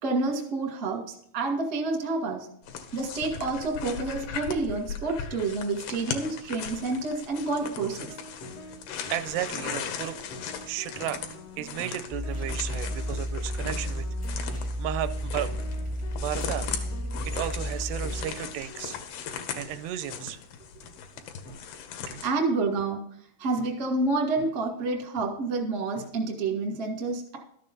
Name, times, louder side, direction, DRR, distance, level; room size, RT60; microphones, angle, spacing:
voice 1, 0.0-1.0 1.3-2.5 2.9-8.1 22.2-23.0 23.4-27.4, right 3 dB, 45° right, 1 dB, 0.9 m, -28 dB
sound 1, 2.6-22.3, left 7 dB, 75° left, 2.7 m, -38 dB
sound 2, 7.5-19.0 19.6-19.7 20.2-20.3 20.8-20.9 21.5-21.6 22.1-22.2 22.8-22.9 23.6-23.7 24.4-24.5 25.2-25.3 25.9-26.1, equal, 55° left, 2.1 m, -45 dB
voice 2, 9.1-10.2 10.6-11.2 11.6-14.5 14.8-15.6 16.1-16.7 17.2-19.0 19.5-20.4, right 12 dB, 85° right, 13 dB, 2.6 m, -34 dB
sound 3, 12.1-18.2, equal, 10° left, 0.4 m, -32 dB
12.5 x 6.8 x 5.3 m, 0.68 s
omnidirectional pair, 4.7 m